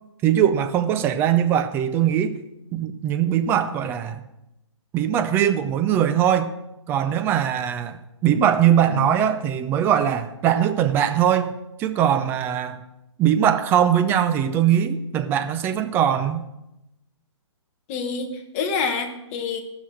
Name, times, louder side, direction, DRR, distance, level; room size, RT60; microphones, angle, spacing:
voice 1, 0.2-2.3 2.7-4.2 4.9-6.5 6.9-11.5 11.8-12.8 13.2-16.4, right 9 dB, 15° right, 9 dB, 0.5 m, -21 dB
voice 2, 17.9-19.6, left 5 dB, 25° left, 5 dB, 1.2 m, -27 dB
15.5 x 6.1 x 6.3 m, 0.91 s
hypercardioid pair, 150°, 16 cm